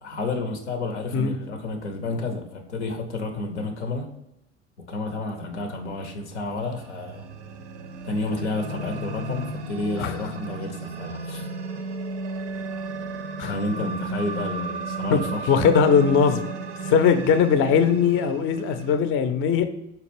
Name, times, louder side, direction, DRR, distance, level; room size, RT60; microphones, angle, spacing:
voice 1, 0.0-4.1 4.9-7.3 8.0-11.5 13.5-15.5, left 2 dB, 90° left, 5 dB, 0.6 m, -30 dB
sound 1, 5.9-19.0, right 3 dB, 85° right, 0.5 m, -34 dB
voice 2, 15.5-16.4 16.9-19.7, left 7 dB, 40° left, 9 dB, 0.4 m, -20 dB
4.3 x 2.3 x 3.2 m, 0.83 s
hypercardioid pair, 65°, 34 cm